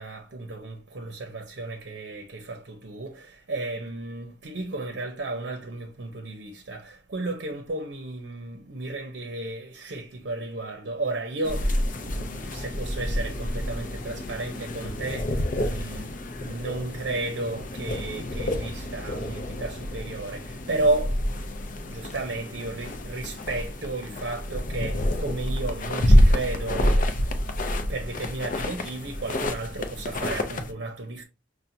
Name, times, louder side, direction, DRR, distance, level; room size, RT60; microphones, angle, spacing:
voice 1, 0.0-16.1 16.4-21.2 21.9-27.4 27.9-31.2, right 2 dB, 65° right, 0.6 m, -33 dB
sound 1, 11.4-30.7, left 1 dB, 45° left, 0.5 m, -27 dB
5.6 x 2.2 x 2.6 m
head